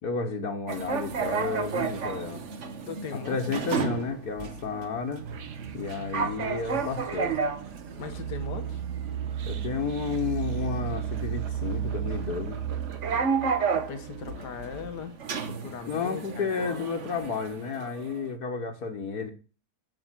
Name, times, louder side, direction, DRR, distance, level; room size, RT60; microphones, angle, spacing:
voice 1, 0.0-2.4 3.3-5.2 5.7-7.4 9.5-12.6 15.9-19.3, left 5 dB, 70° left, 3 dB, 2.0 m, -32 dB
sound 1, 0.7-18.2, right 5 dB, 50° right, 1.4 m, -33 dB
voice 2, 2.9-3.6 8.0-8.8 13.7-15.2 15.5-16.9, left 6 dB, 85° left, 9 dB, 2.1 m, -39 dB
sound 2, 5.2-14.5, right 9 dB, 80° right, 1.9 m, -35 dB
11.0 x 7.4 x 7.5 m, 0.35 s
omnidirectional pair, 1.7 m